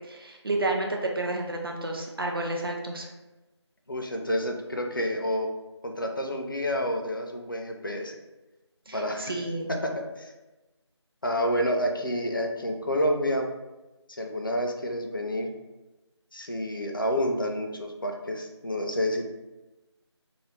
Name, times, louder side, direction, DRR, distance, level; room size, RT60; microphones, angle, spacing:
voice 1, 0.0-3.1 8.9-9.7, right 2 dB, 50° right, 1 dB, 0.4 m, -30 dB
voice 2, 3.9-5.5 5.8-8.2 8.9-9.4 9.7-10.3 11.2-13.5 14.1-15.5 16.3-19.3, equal, 45° left, 3 dB, 0.4 m, -29 dB
2.4 x 2.4 x 3.1 m, 1.1 s
figure-of-eight pair, 165°, 15 cm